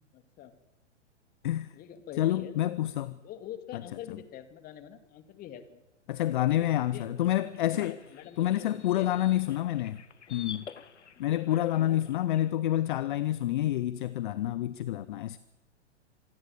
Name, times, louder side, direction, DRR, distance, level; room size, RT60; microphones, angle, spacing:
voice 1, 0.1-0.5 1.7-2.7 3.1-5.8 6.3-7.3 7.7-9.1 11.1-12.0, left 10 dB, 25° left, 2.3 m, -45 dB
voice 2, 2.2-3.2 3.7-3.8 6.1-8.0 8.4-10.0 10.3-10.7 11.2-15.4, left 13 dB, 45° left, 1.0 m, -28 dB
sound 1, 7.0-12.5, left 7 dB, 70° left, 1.4 m, -49 dB
26.5 x 21.0 x 7.4 m
figure-of-eight pair, 110°, 36 cm